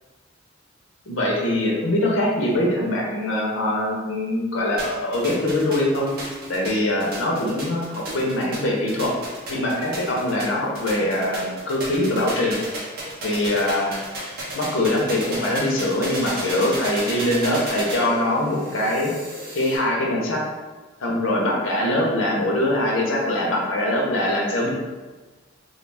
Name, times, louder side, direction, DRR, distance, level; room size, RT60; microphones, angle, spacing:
voice 1, 1.1-9.1 9.5-12.6 13.2-14.0 14.5-19.1 19.5-20.5 21.0-24.7, left 1 dB, 80° left, -2 dB, 0.6 m, -23 dB
sound 1, 4.8-19.8, right 1 dB, 50° right, 0.7 m, -34 dB
2.4 x 2.3 x 3.3 m, 1.3 s
head